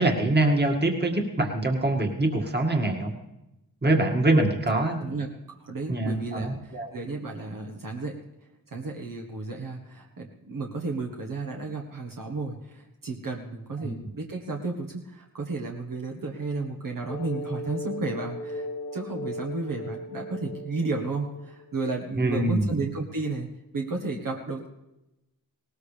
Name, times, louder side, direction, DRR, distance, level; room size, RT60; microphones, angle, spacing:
voice 1, 0.0-3.1 3.8-5.0 5.9-6.9 13.8-13.9 22.2-22.8, right 2 dB, 25° right, 2 dB, 2.1 m, -24 dB
voice 2, 5.6-8.2 8.7-18.7 18.9-23.5 23.7-24.7, right 3 dB, 60° right, 0 dB, 1.5 m, -33 dB
sound 1, 17.1-21.8, left 2 dB, 70° left, 1.6 m, -37 dB
19.5 x 18.5 x 3.4 m, 0.93 s
wide cardioid pair, 85°, 38 cm